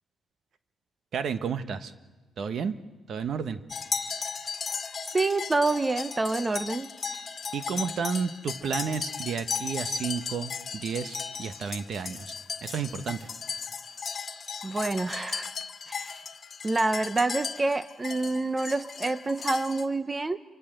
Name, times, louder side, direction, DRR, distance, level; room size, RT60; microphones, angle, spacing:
voice 1, 1.1-1.9 2.4-2.7 3.1-3.6 7.5-12.3 12.6-13.3, right 6 dB, 60° right, 11 dB, 1.2 m, -31 dB
sound 1, 3.7-19.8, left 6 dB, 40° left, 1.9 m, -36 dB
voice 2, 5.0-6.9 14.6-15.5 15.9-16.2 16.6-20.4, right 3 dB, 20° right, 13 dB, 0.8 m, -27 dB
27.0 x 24.5 x 7.9 m, 1.3 s
cardioid pair, 90°, 0 cm